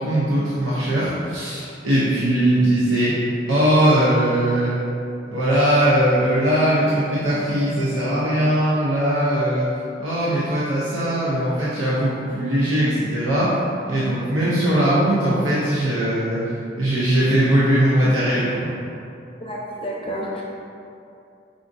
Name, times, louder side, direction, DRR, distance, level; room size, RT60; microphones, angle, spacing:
voice 1, 0.0-3.2 3.5-4.7 5.3-9.6 10.0-13.6 13.9-16.4 16.8-18.7, right 1 dB, 90° right, -9 dB, 0.6 m, -20 dB
voice 2, 19.4-20.4, equal, 25° left, -4 dB, 0.5 m, -30 dB
4.9 x 2.5 x 2.5 m, 2.6 s
head